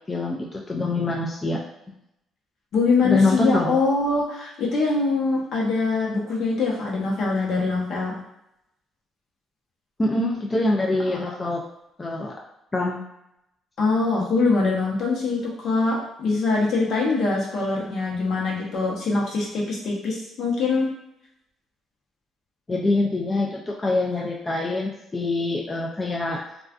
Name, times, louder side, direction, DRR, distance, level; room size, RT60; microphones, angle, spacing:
voice 1, 0.1-1.6 3.0-3.8 10.0-11.6 12.0-12.3 12.7-13.0 22.7-26.4, left 2 dB, 25° left, -1 dB, 0.3 m, -24 dB
voice 2, 2.7-8.1 13.8-20.9, left 3 dB, 65° left, -4 dB, 0.8 m, -23 dB
2.4 x 2.3 x 2.4 m, 0.83 s
cardioid pair, 90°, 0 cm